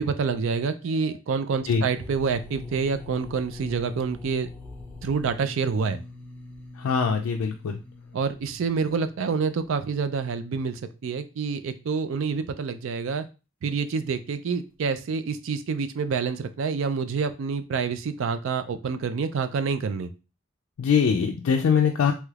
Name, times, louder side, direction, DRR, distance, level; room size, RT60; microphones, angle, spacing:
voice 1, 0.0-4.5 5.0-6.0 8.1-13.3 13.6-20.1, right 5 dB, 65° right, 11 dB, 0.3 m, -27 dB
sound 1, 1.9-9.7, left 3 dB, 10° left, 0.4 m, -43 dB
voice 2, 6.8-7.8 20.8-22.1, left 6 dB, 90° left, 2 dB, 0.3 m, -22 dB
3.2 x 3.0 x 2.3 m, 0.31 s
head